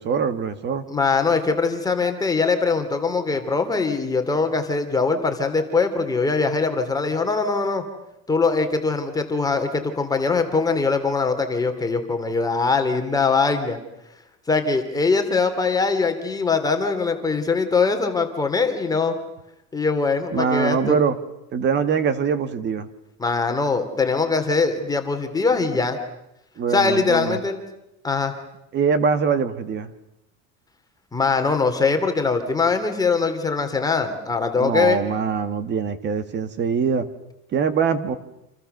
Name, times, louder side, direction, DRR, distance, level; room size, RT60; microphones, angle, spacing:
voice 1, 0.0-0.9 1.4-1.5 20.3-21.2 21.5-22.9 26.6-27.4 28.7-29.9 34.6-37.1 37.5-38.2, right 6 dB, 30° right, 11 dB, 1.9 m, -23 dB
voice 2, 0.9-7.8 8.3-13.8 14.5-19.1 19.7-21.0 23.2-26.0 26.7-27.6 28.0-28.3 31.1-35.0, left 4 dB, 10° left, 6 dB, 2.8 m, -22 dB
29.0 x 28.5 x 6.8 m, 0.87 s
cardioid pair, 170°, 35 cm